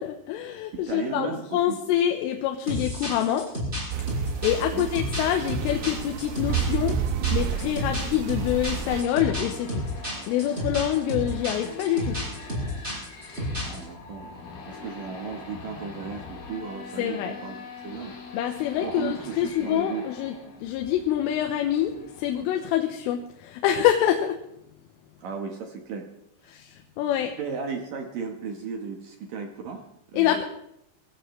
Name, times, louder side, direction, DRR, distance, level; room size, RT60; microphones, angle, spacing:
voice 1, 0.0-3.5 4.1-7.0 7.3-12.3 17.0-17.3 18.3-20.4 20.6-24.4 26.5-27.4 30.1-30.4, left 11 dB, 85° left, 4 dB, 3.5 m, -26 dB
voice 2, 0.7-1.8 4.7-4.9 13.5-14.3 14.7-17.6 17.8-18.2 18.8-20.1 25.2-26.1 26.4-26.5 27.4-30.4, right 5 dB, 70° right, 3 dB, 2.1 m, -35 dB
sound 1, 2.7-13.8, equal, 10° right, 6.6 m, -31 dB
sound 2, 3.9-9.0, right 10 dB, 90° right, 3.4 m, -30 dB
sound 3, 4.0-22.4, left 4 dB, 50° left, 4.1 m, -43 dB
24.0 x 16.0 x 3.2 m, 0.78 s
omnidirectional pair, 5.7 m